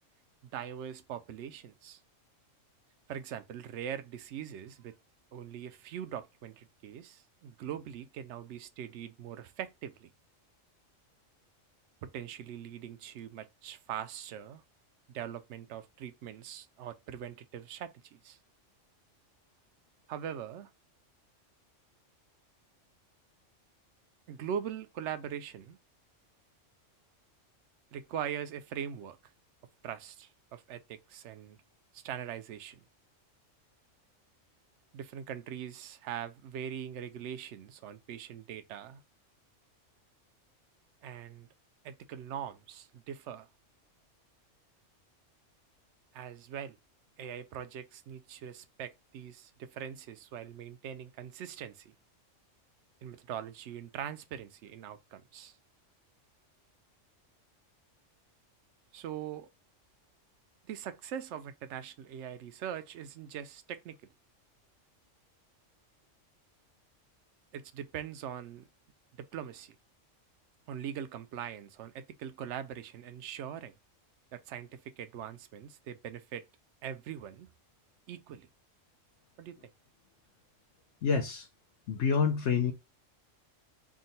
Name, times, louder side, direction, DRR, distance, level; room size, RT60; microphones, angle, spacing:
voice 1, 0.4-2.0 3.1-5.0 5.3-10.1 12.0-14.6 15.1-18.4 20.1-20.7 24.3-25.8 27.9-29.2 29.8-31.6 31.9-32.8 34.9-39.0 41.0-41.5 41.8-43.5 46.1-46.8 47.2-51.9 53.0-55.6 58.9-59.5 60.6-64.0 67.5-68.7 69.2-69.8 70.7-73.8 74.3-76.5 76.8-77.5 78.1-78.5 79.4-79.7, right 9 dB, 70° right, 0.8 m, -42 dB
voice 2, 81.0-81.5 81.9-82.7, left 6 dB, 70° left, 0.9 m, -27 dB
3.6 x 2.2 x 4.0 m
omnidirectional pair, 1.3 m